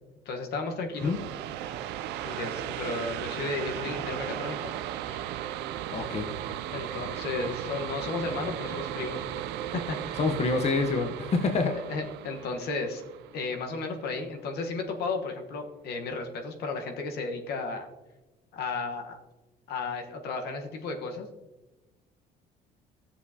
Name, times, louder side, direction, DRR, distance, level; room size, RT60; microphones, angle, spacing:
voice 1, 0.2-1.1 1.7-1.8 2.2-4.7 5.1-5.2 6.7-9.4 9.7-10.2 11.7-13.0 13.3-17.9 18.5-19.2 19.7-21.3, left 3 dB, 70° left, 4 dB, 1.2 m, -34 dB
sound 1, 0.9-14.3, right 11 dB, 85° right, 0.4 m, -36 dB
voice 2, 5.9-6.3 10.2-11.7, left 4 dB, 40° left, 4 dB, 0.9 m, -26 dB
13.5 x 7.1 x 2.8 m, 1.1 s
cardioid pair, 110°, 17 cm